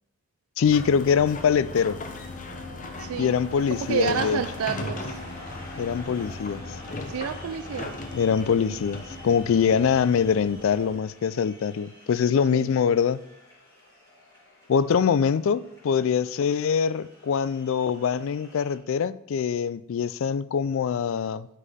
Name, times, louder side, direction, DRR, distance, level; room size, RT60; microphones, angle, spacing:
voice 1, 0.6-2.0 3.2-4.4 5.8-6.6 8.1-13.2 14.7-21.5, left 7 dB, 65° left, 0.3 m, -23 dB
sound 1, 0.6-11.0, left 2 dB, 35° left, 0.7 m, -38 dB
sound 2, 1.4-18.7, left 1 dB, 20° left, 3.4 m, -48 dB
voice 2, 3.0-3.4 3.7-5.2 7.1-7.9 12.5-12.7, right 7 dB, 75° right, 0.4 m, -29 dB
12.5 x 5.4 x 3.5 m
head